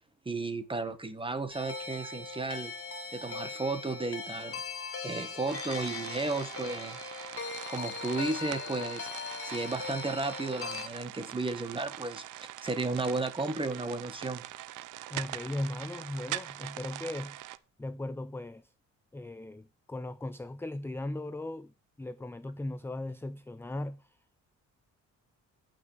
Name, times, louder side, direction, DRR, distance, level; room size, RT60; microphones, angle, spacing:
voice 1, 0.3-2.7 3.1-4.6 5.0-7.0 7.7-9.1 9.4-14.4, right 3 dB, 15° right, 1.7 m, -34 dB
sound 1, 1.5-10.9, left 5 dB, 45° left, 2.8 m, -40 dB
sound 2, 5.5-17.6, right 14 dB, 85° right, 0.8 m, -43 dB
voice 2, 15.1-17.5 17.8-18.7 19.1-24.4, left 1 dB, 10° left, 0.5 m, -38 dB
11.5 x 6.1 x 7.3 m
cardioid pair, 90°, 30 cm